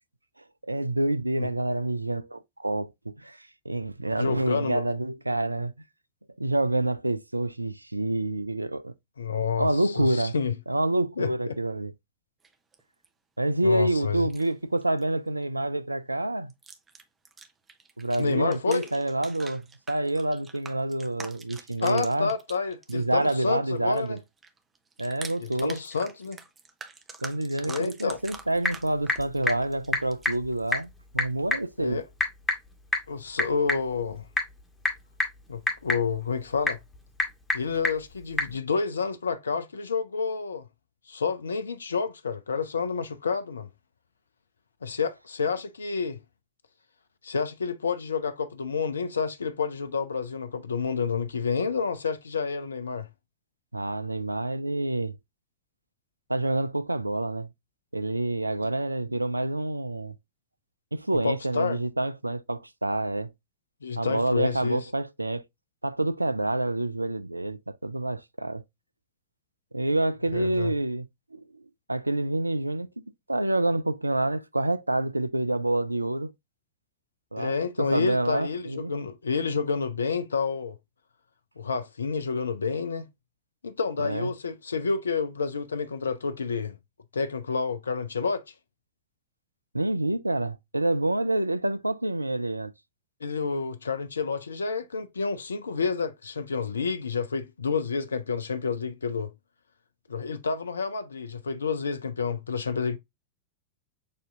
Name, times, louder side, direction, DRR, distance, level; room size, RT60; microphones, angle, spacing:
voice 1, 0.6-2.9 3.2-5.7 6.4-8.9 9.6-10.3 10.7-11.9 13.4-16.5 18.0-22.3 22.9-24.2 25.0-25.8 27.2-32.0 53.7-55.2 56.3-57.5 57.9-60.1 60.9-63.3 64.0-65.4 65.8-68.6 69.7-71.6 71.9-72.9 73.3-76.3 77.3-78.9 84.0-84.3 89.7-92.7, right 1 dB, 85° right, 0.3 m, -27 dB
voice 2, 4.2-4.8 9.2-10.6 11.2-11.5 13.6-14.3 18.2-18.9 21.8-24.2 25.4-26.4 27.6-28.2 31.8-32.0 33.1-34.3 35.5-36.8 37.5-40.6 41.1-43.7 44.8-46.2 47.2-53.1 61.2-61.8 63.8-64.9 70.3-70.7 77.4-80.8 81.6-83.1 83.6-86.8 87.1-88.5 93.2-99.3 100.1-103.0, left 5 dB, 70° left, 0.4 m, -29 dB
sound 1, 12.4-13.1 14.1-14.5 14.8-15.0 15.4-15.6 16.5-23.5 23.7-30.8, right 4 dB, 15° right, 0.7 m, -46 dB
Typing / Telephone, 28.1-38.6, left 2 dB, 10° left, 1.3 m, -32 dB
6.6 x 2.7 x 2.4 m
figure-of-eight pair, 90°, 0 cm